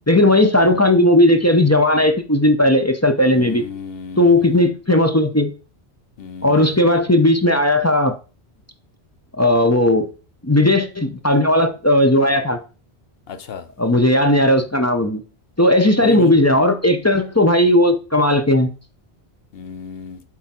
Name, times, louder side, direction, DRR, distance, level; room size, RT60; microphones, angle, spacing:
voice 1, 0.1-3.6 4.2-5.5 6.4-8.1 9.4-10.1 10.4-12.6 13.8-15.2 15.6-18.7, left 1 dB, 20° left, 0.5 m, -16 dB
voice 2, 3.3-4.7 6.2-6.9 13.3-13.7 16.0-16.3 19.5-20.2, left 6 dB, 65° left, 0.9 m, -33 dB
8.5 x 3.6 x 4.3 m
omnidirectional pair, 1.1 m